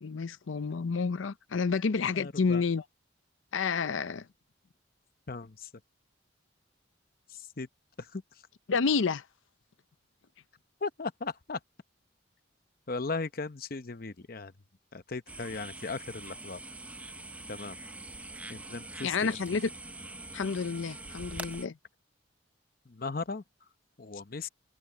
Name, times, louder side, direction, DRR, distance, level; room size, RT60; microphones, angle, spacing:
voice 1, 0.0-2.8 3.5-4.3 8.7-9.2 19.0-19.7 20.3-21.7, left 5 dB, 80° left, 0.6 m, -29 dB
voice 2, 2.1-2.6 5.3-5.7 7.3-7.7 8.0-8.2 10.8-11.6 12.9-14.5 14.9-16.6 17.5-17.8 18.5-19.4 22.9-23.4 24.0-24.5, left 4 dB, 45° left, 0.8 m, -37 dB
sound 1, 15.3-21.7, right 2 dB, 5° right, 0.6 m, -44 dB
head